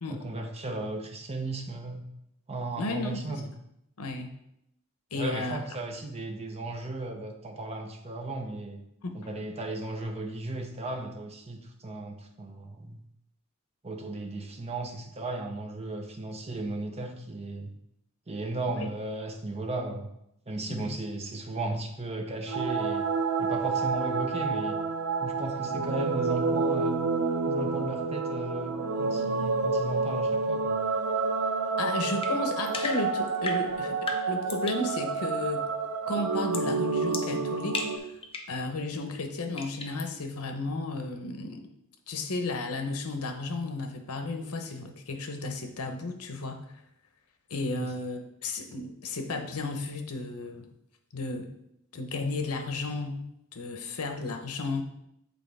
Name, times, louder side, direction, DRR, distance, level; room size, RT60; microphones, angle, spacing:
voice 1, 0.1-2.1 2.5-3.5 5.2-8.8 9.1-13.0 13.8-17.7 18.3-20.1 20.5-23.1 23.4-24.8 25.2-27.0 27.5-30.8 47.8-47.9, right 2 dB, 30° right, 3 dB, 0.8 m, -35 dB
voice 2, 2.8-3.4 4.0-4.3 5.1-5.6 9.0-9.2 18.8-18.9 20.7-20.9 31.8-35.7 36.1-38.0 38.5-41.6 42.1-46.7 47.5-50.7 51.1-51.5 51.9-53.2 53.5-54.8, left 2 dB, 85° left, 5 dB, 0.9 m, -33 dB
sound 1, 22.5-38.0, right 4 dB, 85° right, 0.6 m, -29 dB
sound 2, 32.2-34.9 36.5-36.7 37.1-38.6 39.6-40.1, left 3 dB, 25° left, 0.6 m, -37 dB
8.0 x 4.1 x 3.4 m, 0.78 s
head